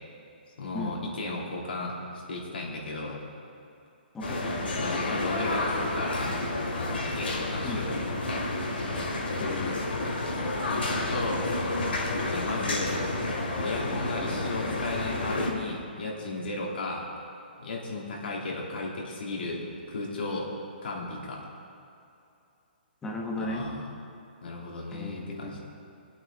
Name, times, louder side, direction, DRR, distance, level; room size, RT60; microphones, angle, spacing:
voice 1, 0.6-1.9 2.3-3.2 4.8-6.3 6.9-8.0 9.9-10.0 10.7-11.5 12.2-13.0 13.6-17.1 17.6-19.6 19.9-20.5 20.8-21.4 23.4-23.9 24.4-25.6, left 2 dB, 70° left, -3 dB, 3.3 m, -35 dB
voice 2, 4.1-4.5 7.6-7.8 9.4-9.8 23.0-23.7 24.9-25.5, left 2 dB, 10° left, 0 dB, 1.1 m, -35 dB
sound 1, 4.2-15.5, left 2 dB, 85° left, 3.0 m, -30 dB
23.0 x 8.7 x 3.9 m, 2.7 s
hypercardioid pair, 170°, 6 cm